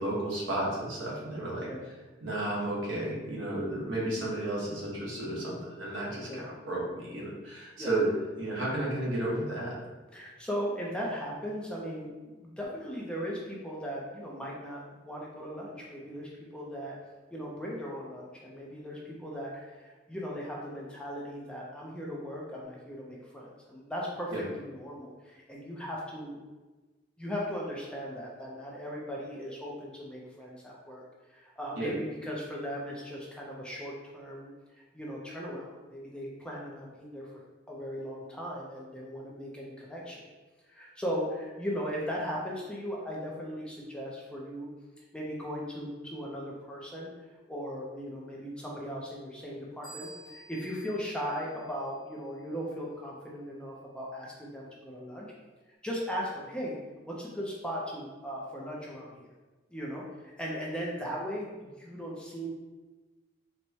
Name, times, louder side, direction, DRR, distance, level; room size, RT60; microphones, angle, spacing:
voice 1, 0.0-1.7 2.2-8.1 8.4-9.8 24.3-24.4 31.8-31.9, right 1 dB, 85° right, -5 dB, 1.1 m, -32 dB
voice 2, 10.1-17.0 17.3-26.4 27.2-31.0 31.3-34.5 34.9-37.3 37.7-40.2 40.7-44.7 45.1-47.1 47.5-55.3 55.8-56.8 57.1-59.3 59.7-62.5, equal, 5° left, -4 dB, 0.5 m, -38 dB
sound 1, 49.8-52.3, right 3 dB, 25° left, 1.1 m, -52 dB
4.4 x 2.1 x 2.8 m, 1.2 s
head